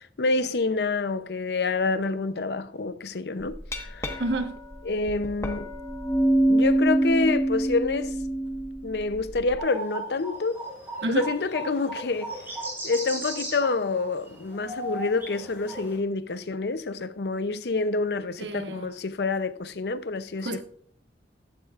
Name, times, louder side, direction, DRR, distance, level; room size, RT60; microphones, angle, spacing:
voice 1, 0.2-4.2 4.9-5.7 6.5-8.2 8.8-10.6 11.1-12.3 12.8-20.6, left 3 dB, 65° left, 0.6 m, -27 dB
Glass, 3.4-9.6, right 1 dB, 15° left, 1.3 m, -26 dB
voice 2, 4.2-4.5 11.0-11.3 18.4-18.9 20.4-20.6, right 1 dB, 85° right, 1.2 m, -29 dB
sound 1, 9.6-16.0, right 1 dB, 15° right, 6.0 m, -37 dB
15.5 x 12.5 x 2.4 m
head